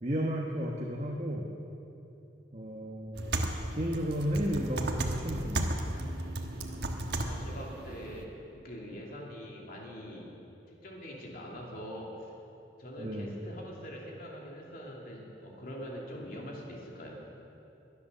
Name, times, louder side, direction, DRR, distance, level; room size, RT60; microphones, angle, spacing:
voice 1, 0.0-1.5 2.5-3.4 3.7-5.8 13.0-13.3, equal, 40° right, -2 dB, 1.2 m, -33 dB
sound 1, 3.1-8.2, right 1 dB, 65° right, 1.3 m, -34 dB
voice 2, 7.2-10.3 10.7-12.3 12.8-17.2, equal, 55° left, -2 dB, 2.8 m, -43 dB
22.0 x 8.4 x 6.7 m, 2.8 s
head